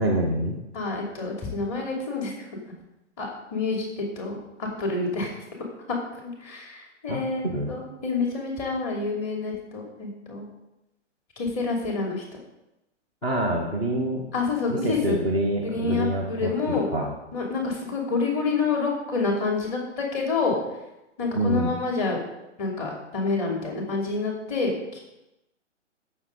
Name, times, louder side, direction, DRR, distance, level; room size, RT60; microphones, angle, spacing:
voice 1, 0.0-0.6 7.1-7.8 13.2-14.2 14.7-17.1 21.3-21.7, right 1 dB, 5° left, -4 dB, 0.4 m, -26 dB
voice 2, 0.7-2.3 3.2-5.3 6.4-10.5 11.4-12.2 14.3-15.2 15.6-16.9 17.3-20.6 21.2-22.2 22.6-25.0, left 4 dB, 30° left, -1 dB, 2.9 m, -28 dB
14.5 x 6.4 x 3.9 m, 0.93 s
figure-of-eight pair, 125°, 37 cm